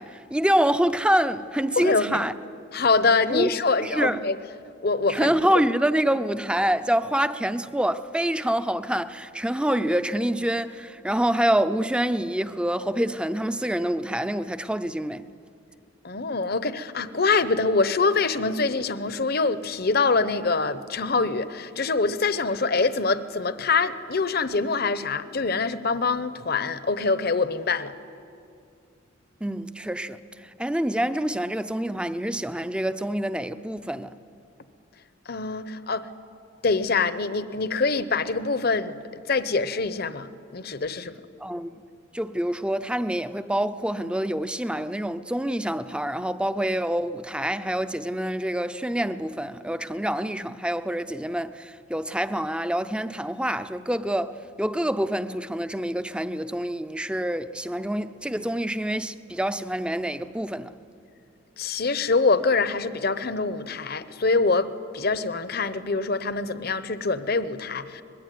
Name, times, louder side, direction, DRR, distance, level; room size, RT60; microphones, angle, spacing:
voice 1, 0.0-2.3 3.3-3.5 3.8-4.2 5.1-15.2 29.4-34.1 41.4-41.8 42.1-60.7, right 1 dB, 5° right, 0.6 m, -26 dB
voice 2, 1.8-2.2 2.7-4.4 4.8-5.4 16.0-27.9 35.3-36.1 36.6-41.2 61.6-68.0, left 4 dB, 50° left, 0.9 m, -24 dB
24.5 x 21.0 x 9.3 m
head